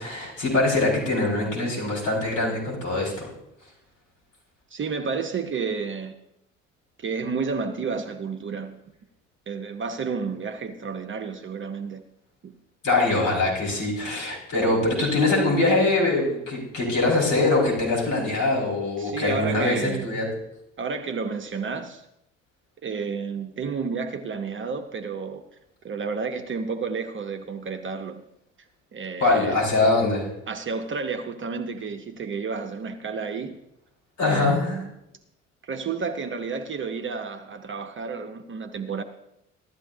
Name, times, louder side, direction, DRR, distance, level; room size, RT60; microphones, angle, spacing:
voice 1, 0.0-3.3 12.8-20.3 29.2-30.3 34.2-34.8, left 2 dB, 50° left, 5.6 m, -23 dB
voice 2, 4.7-6.1 7.0-8.8 9.5-12.0 12.4-12.5 19.0-20.1 20.8-22.1 22.8-25.4 25.8-28.2 28.9-29.6 30.5-33.6 34.2-34.9 35.6-39.0, right 5 dB, 30° right, 1.0 m, -31 dB
15.5 x 13.0 x 2.8 m
figure-of-eight pair, 50°, 39 cm